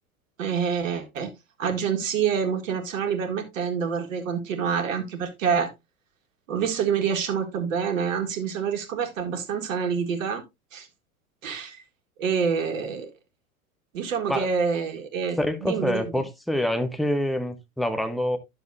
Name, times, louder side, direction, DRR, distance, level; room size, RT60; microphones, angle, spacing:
voice 1, 0.4-1.3 1.6-5.7 6.5-10.4 10.7-10.9 11.4-11.8 12.2-13.1 13.9-16.2, right 6 dB, 60° right, 1.8 m, -27 dB
voice 2, 15.4-18.4, left 1 dB, ahead, 0.7 m, -26 dB
10.5 x 6.7 x 2.6 m
figure-of-eight pair, 90°, 44 cm